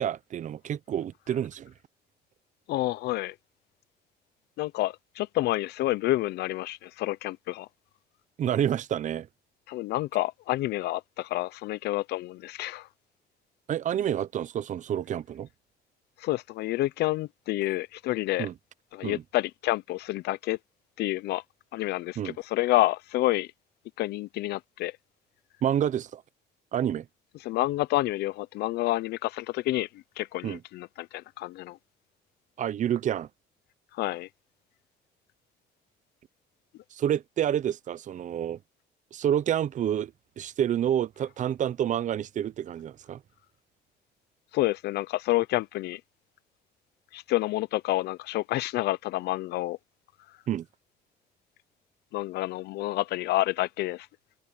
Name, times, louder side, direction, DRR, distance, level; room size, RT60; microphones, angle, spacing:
voice 1, 0.0-1.7 8.4-9.3 13.7-15.5 18.4-18.5 19.0-19.2 22.2-22.4 25.6-26.2 26.7-27.1 30.4-30.6 32.6-33.3 36.9-38.6 39.1-43.2 50.5-50.7, right 10 dB, 45° right, 0.7 m, -28 dB
voice 2, 2.7-3.3 4.6-7.7 9.7-12.9 16.2-18.5 18.9-20.6 21.0-21.4 21.7-23.5 24.0-25.0 27.4-31.8 33.9-34.3 44.5-46.0 47.1-49.8 52.1-54.1, left 17 dB, 75° left, 0.6 m, -29 dB
cardioid pair, 110°, 17 cm